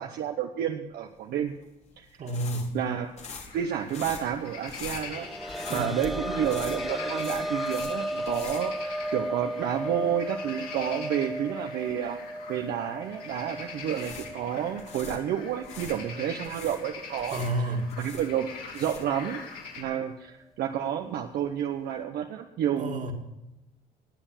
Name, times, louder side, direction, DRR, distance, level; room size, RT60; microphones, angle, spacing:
voice 1, 0.0-1.5 2.0-2.1 2.7-3.1 3.5-12.2 12.5-17.4 18.0-19.4 19.8-23.1, right 9 dB, 70° right, 4 dB, 1.0 m, -30 dB
sound 1, 1.4-9.5 9.7-9.9 13.7-16.0 16.4-19.2, left 5 dB, 40° left, 2.2 m, -44 dB
voice 2, 2.2-2.8 5.7-5.9 17.3-18.0 22.8-23.1, right 1 dB, 45° right, 4 dB, 2.3 m, -30 dB
sound 2, 3.3-19.8, left 5 dB, 65° left, 4.4 m, -43 dB
sound 3, 4.9-16.3 16.7-16.8 18.3-18.4, right 1 dB, ahead, 0.4 m, -35 dB
19.0 x 7.0 x 7.4 m, 0.95 s
cardioid pair, 110°, 17 cm